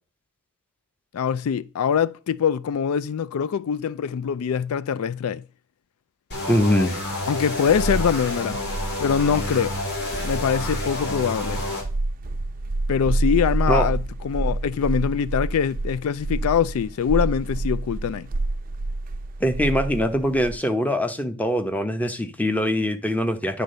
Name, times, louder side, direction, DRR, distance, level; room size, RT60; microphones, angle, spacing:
voice 1, 1.1-5.4 7.3-8.6 9.0-9.7 10.2-11.6 12.9-18.3, left 7 dB, 70° left, 0.3 m, -23 dB
sound 1, 6.3-11.8, left 2 dB, 50° left, 3.4 m, -29 dB
voice 2, 6.5-7.0 13.7-13.9 19.4-23.6, equal, 5° left, 0.8 m, -23 dB
sound 2, 7.2-20.6, right 2 dB, 40° right, 0.5 m, -28 dB
9.5 x 3.9 x 6.6 m
head